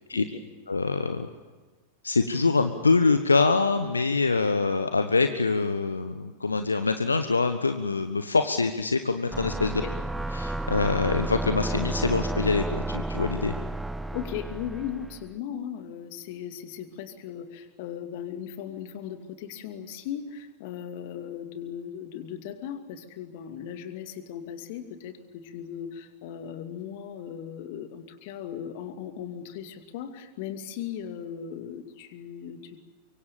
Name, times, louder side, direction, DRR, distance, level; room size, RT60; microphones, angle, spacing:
voice 1, 0.7-1.3 2.0-9.8 10.3-13.5, left 4 dB, 80° left, 9 dB, 1.1 m, -24 dB
sound 1, 9.3-15.3, right 1 dB, 5° right, 0.9 m, -31 dB
voice 2, 14.1-32.8, left 9 dB, 50° left, 7 dB, 2.6 m, -37 dB
24.5 x 24.5 x 7.2 m, 1.3 s
figure-of-eight pair, 90°, 0 cm